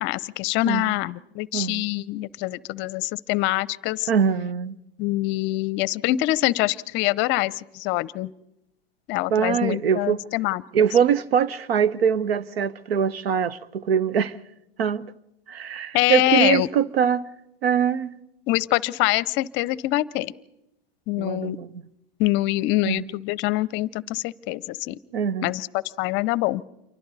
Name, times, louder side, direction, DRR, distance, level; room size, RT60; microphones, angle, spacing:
voice 1, 0.0-4.1 5.0-8.3 9.1-10.6 15.9-16.7 18.5-20.3 21.1-21.6 22.2-25.0 25.4-26.6, left 18 dB, 40° left, 0.6 m, -24 dB
voice 2, 1.5-1.8 4.1-4.8 9.3-10.2 10.7-14.3 14.8-15.1 15.5-17.2 17.6-18.1 21.2-21.8 22.8-23.0 25.1-25.5, right 7 dB, 85° right, 1.0 m, -23 dB
28.0 x 24.0 x 4.1 m
hypercardioid pair, 120°, 30 cm